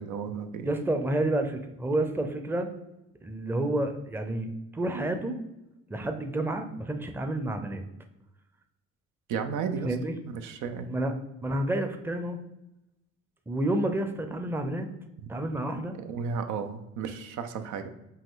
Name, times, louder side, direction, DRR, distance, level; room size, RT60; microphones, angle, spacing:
voice 1, 0.0-0.7 9.3-9.9 10.3-11.0 16.0-17.9, right 6 dB, 80° right, 8 dB, 0.6 m, -33 dB
voice 2, 0.6-2.7 3.2-5.4 5.9-7.8 9.8-10.1 10.9-11.1 11.4-12.4 13.5-14.9 15.3-16.0, right 1 dB, 5° right, 6 dB, 0.5 m, -29 dB
5.4 x 2.5 x 3.7 m, 0.92 s
cardioid pair, 90°, 30 cm